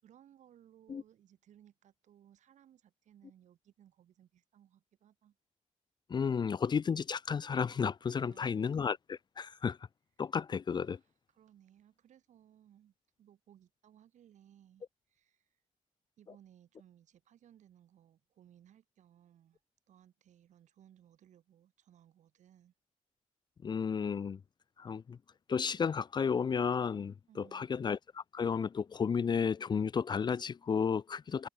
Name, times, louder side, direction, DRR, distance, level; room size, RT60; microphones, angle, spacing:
voice 1, 0.0-5.4 8.1-8.7 10.7-10.9 11.3-15.5 16.2-19.6 19.9-22.7 27.3-27.7, right 10 dB, 80° right, 4.0 m, -62 dB
voice 2, 6.1-9.8 10.2-11.0 23.6-24.4 24.8-25.2 25.5-31.5, left 6 dB, 35° left, 0.4 m, -33 dB
cardioid pair, 100°, 12 cm